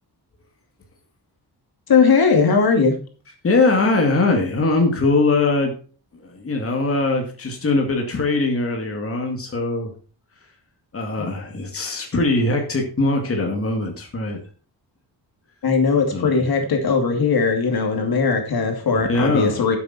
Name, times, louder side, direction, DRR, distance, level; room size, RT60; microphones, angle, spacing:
voice 1, 1.9-2.9 15.6-19.8, left 5 dB, 60° left, 3 dB, 2.6 m, -19 dB
voice 2, 3.4-5.7 6.1-9.9 10.9-14.4 16.1-16.5 18.9-19.6, left 3 dB, 35° left, 2 dB, 2.4 m, -21 dB
11.5 x 7.8 x 4.3 m, 0.39 s
wide cardioid pair, 175°, 41 cm